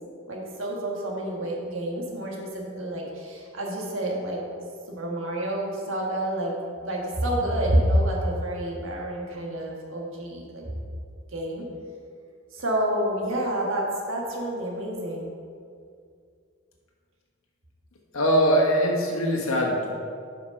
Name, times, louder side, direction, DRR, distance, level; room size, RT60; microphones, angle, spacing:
voice 1, 0.3-4.4 4.9-6.5 6.8-10.7 11.3-11.6 12.5-15.3, right 1 dB, 65° right, -1 dB, 1.4 m, -28 dB
voice 2, 18.1-19.9, equal, 80° left, -1 dB, 1.3 m, -22 dB
7.6 x 5.2 x 5.2 m, 2.3 s
head